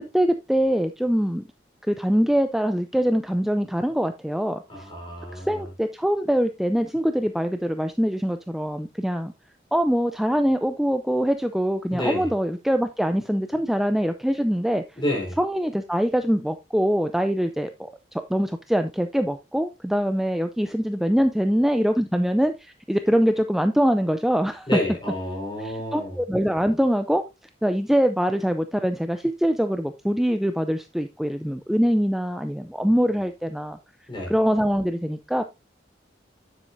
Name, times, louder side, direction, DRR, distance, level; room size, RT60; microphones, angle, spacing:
voice 1, 0.1-1.5 1.9-4.9 5.3-9.3 9.7-14.8 15.4-24.7 25.6-27.2 27.6-33.8 34.3-35.4, equal, ahead, 0.4 m, -23 dB
voice 2, 4.7-5.7 11.9-12.3 15.0-15.4 24.7-26.2 34.1-34.3, left 1 dB, 25° left, 4.1 m, -29 dB
9.7 x 7.6 x 2.6 m
head